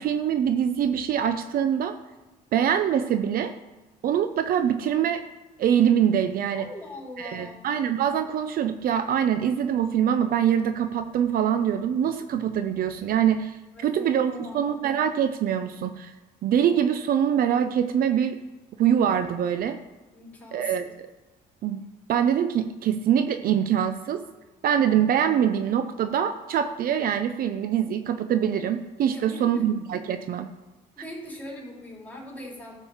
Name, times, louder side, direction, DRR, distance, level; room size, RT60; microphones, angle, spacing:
voice 1, 0.0-1.9 2.5-3.5 4.0-5.2 5.6-6.7 7.2-16.1 16.4-18.4 18.8-19.8 20.5-21.1 21.6-24.2 24.6-30.5, right 9 dB, 60° right, 9 dB, 0.7 m, -24 dB
voice 2, 6.6-7.6 13.7-14.7 20.1-20.9 29.1-29.7 31.0-32.8, left 1 dB, 10° left, -4 dB, 4.1 m, -41 dB
12.5 x 5.4 x 7.2 m, 1.1 s
cardioid pair, 110°, 17 cm